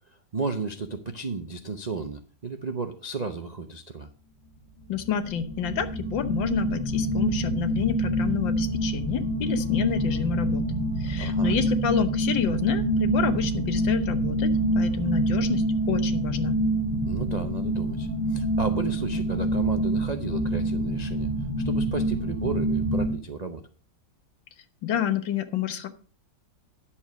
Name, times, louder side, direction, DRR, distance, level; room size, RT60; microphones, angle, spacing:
voice 1, 0.3-4.1 11.2-11.5 17.0-21.3 21.6-23.6, right 4 dB, 60° right, 7 dB, 0.4 m, -33 dB
voice 2, 4.9-10.7 11.0-16.6 24.8-25.9, left 9 dB, 85° left, 10 dB, 1.9 m, -29 dB
sound 1, 4.9-23.1, right 1 dB, 15° left, 1.8 m, -26 dB
10.5 x 7.1 x 5.9 m, 0.38 s
omnidirectional pair, 2.0 m